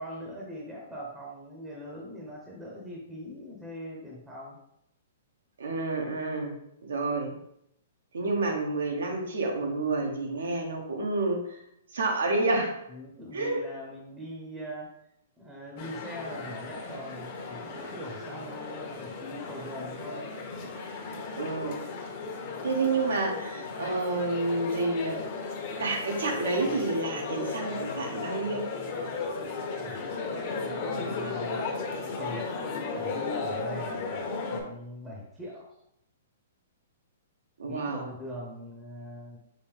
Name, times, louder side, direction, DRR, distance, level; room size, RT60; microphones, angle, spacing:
voice 1, 0.0-4.6 12.9-14.9 15.4-20.3 29.8-31.7 32.2-35.7 37.7-39.4, equal, 10° right, -3 dB, 0.7 m, -42 dB
voice 2, 5.6-6.5 6.8-7.4 8.1-11.6 11.9-12.7 13.3-13.6 21.4-21.8 22.6-25.2 25.8-28.7 37.6-38.1, right 3 dB, 90° right, 2 dB, 1.0 m, -29 dB
sound 1, 15.8-34.6, left 4 dB, 45° left, 1.0 m, -35 dB
5.2 x 2.6 x 3.4 m, 0.76 s
hypercardioid pair, 155°, 0 cm